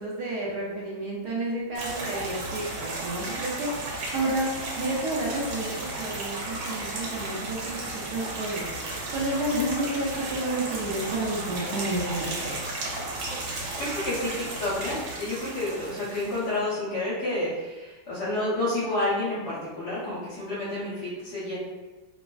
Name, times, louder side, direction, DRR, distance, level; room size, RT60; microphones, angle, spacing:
voice 1, 0.0-4.5 4.8-12.5, right 2 dB, 70° right, -4 dB, 1.0 m, -31 dB
sound 1, 1.8-16.6, right 2 dB, 90° right, 1.4 m, -34 dB
voice 2, 13.6-21.6, left 2 dB, 60° left, -9 dB, 1.3 m, -30 dB
3.3 x 2.0 x 2.3 m, 1.2 s
omnidirectional pair, 2.2 m